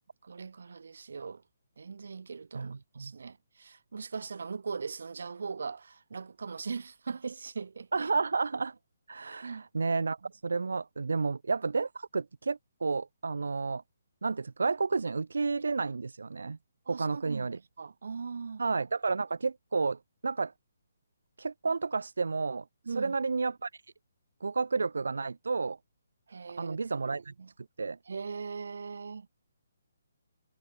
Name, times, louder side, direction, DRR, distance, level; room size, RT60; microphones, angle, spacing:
voice 1, 0.2-1.4 1.8-8.1 9.4-9.7 10.2-10.3 16.8-18.6 22.8-23.2 26.3-27.5 28.1-29.3, right 5 dB, 70° right, 1.6 m, -40 dB
voice 2, 2.5-3.1 7.9-8.7 9.1-10.2 10.4-13.8 14.2-16.6 16.9-17.6 18.6-20.5 21.4-22.6 22.9-23.8 24.4-25.8 26.6-27.3 27.8-28.0, right 4 dB, 90° right, 0.6 m, -31 dB
hypercardioid pair, 165°, 0 cm